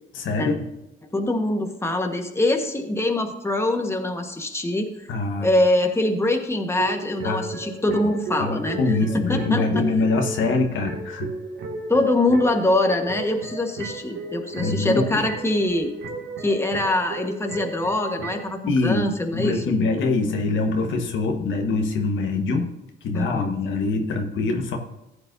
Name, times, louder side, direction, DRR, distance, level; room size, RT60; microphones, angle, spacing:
voice 1, 0.1-0.7 5.1-5.5 7.2-7.5 8.4-11.3 14.6-15.3 18.6-19.0 19.3-22.7 23.0-24.8, left 3 dB, 75° left, 4 dB, 1.5 m, -24 dB
voice 2, 1.1-4.9 5.4-8.8 9.1-9.8 11.9-15.9 16.4-19.6 23.1-23.6, left 1 dB, 15° left, 4 dB, 1.5 m, -23 dB
sound 1, 6.8-18.5, right 3 dB, 80° right, 2.3 m, -34 dB
15.0 x 8.8 x 2.7 m, 0.92 s
cardioid pair, 90°, 20 cm